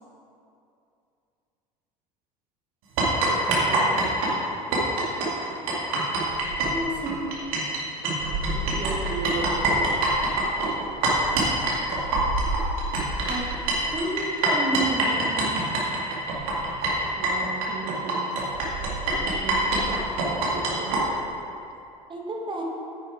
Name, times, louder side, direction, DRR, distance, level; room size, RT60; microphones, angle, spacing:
sound 1, 3.0-7.8 8.0-21.0, right 2 dB, 60° right, 2.2 m, -25 dB
voice 1, 3.3-3.9 8.5-10.0 17.2-18.2 19.2-21.0, right 3 dB, 45° right, -2 dB, 1.3 m, -35 dB
voice 2, 6.6-7.3 10.5-11.3 13.3-13.6 13.9-15.7 22.1-22.6, right 2 dB, 25° right, 0 dB, 1.4 m, -31 dB
9.6 x 6.8 x 4.8 m, 2.6 s
figure-of-eight pair, 70°, 21 cm